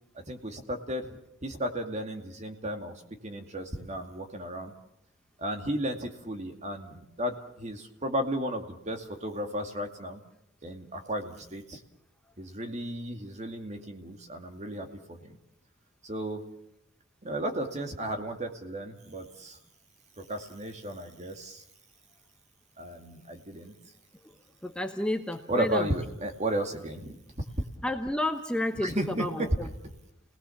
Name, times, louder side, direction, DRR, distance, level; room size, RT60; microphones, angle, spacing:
voice 1, 0.1-4.7 5.4-10.2 10.6-11.8 12.4-15.4 16.0-16.4 17.2-19.6 20.2-21.6 22.8-23.7 25.5-27.2 28.8-29.5, right 1 dB, 35° right, 5 dB, 2.4 m, -34 dB
voice 2, 24.6-25.9 27.8-29.7, left 1 dB, 5° left, 5 dB, 1.1 m, -31 dB
29.5 x 19.0 x 7.2 m, 0.82 s
head